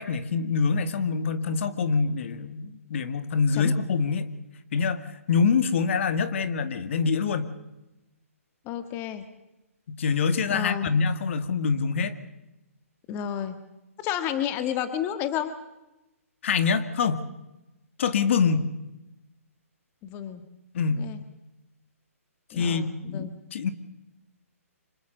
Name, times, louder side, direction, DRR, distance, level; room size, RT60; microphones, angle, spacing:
voice 1, 0.0-4.3 4.7-7.5 9.9-12.2 16.4-17.2 18.0-18.7 20.7-21.1 22.6-23.7, left 5 dB, 55° left, 11 dB, 2.0 m, -25 dB
voice 2, 8.6-9.2 10.5-10.9 13.1-13.6 14.0-15.5 18.4-18.6 20.0-20.4 20.9-21.2 22.5-23.4, left 10 dB, 25° left, 10 dB, 1.5 m, -31 dB
25.5 x 21.0 x 6.6 m, 0.97 s
hypercardioid pair, 145°, 8 cm